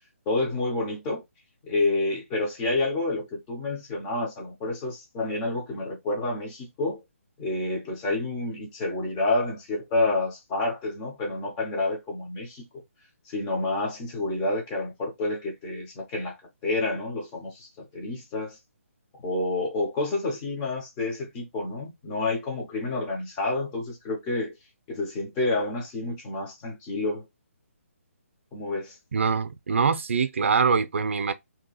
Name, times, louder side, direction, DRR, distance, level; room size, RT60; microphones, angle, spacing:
voice 1, 0.3-1.2 1.6-7.0 7.4-12.7 13.3-16.4 16.6-18.6 19.1-24.5 24.9-27.2 28.5-29.0, left 2 dB, 15° left, 0.6 m, -29 dB
voice 2, 29.1-31.3, right 5 dB, 60° right, 0.4 m, -24 dB
2.8 x 2.3 x 3.9 m
hypercardioid pair, 175°, 8 cm